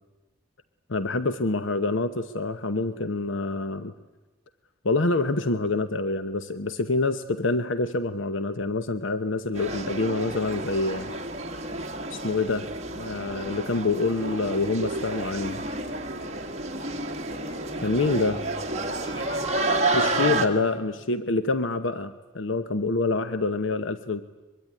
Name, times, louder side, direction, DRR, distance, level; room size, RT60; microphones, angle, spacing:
voice 1, 0.9-3.9 4.8-11.1 12.1-12.7 13.0-15.6 17.8-18.4 19.9-24.2, left 3 dB, 70° left, 12 dB, 1.0 m, -26 dB
sound 1, 9.6-20.5, right 2 dB, 35° right, 1.9 m, -30 dB
voice 2, 18.1-19.6 20.0-20.9, left 1 dB, 25° left, 4 dB, 3.8 m, -45 dB
23.0 x 23.0 x 9.8 m, 1.2 s
head